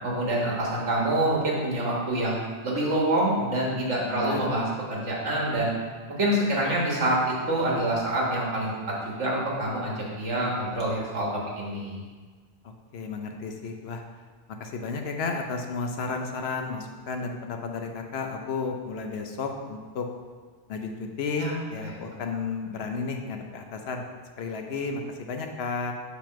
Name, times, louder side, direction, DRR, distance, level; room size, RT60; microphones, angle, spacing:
voice 1, 0.0-5.7 6.2-8.7 9.0-11.3 11.6-12.0 21.4-21.5 21.8-22.2, right 1 dB, 90° right, -4 dB, 1.7 m, -26 dB
voice 2, 3.4-4.5 12.6-14.0 14.6-20.1 20.7-24.0 24.4-25.9, left 4 dB, 65° left, 3 dB, 0.9 m, -33 dB
6.9 x 3.1 x 5.7 m, 1.5 s
omnidirectional pair, 1.2 m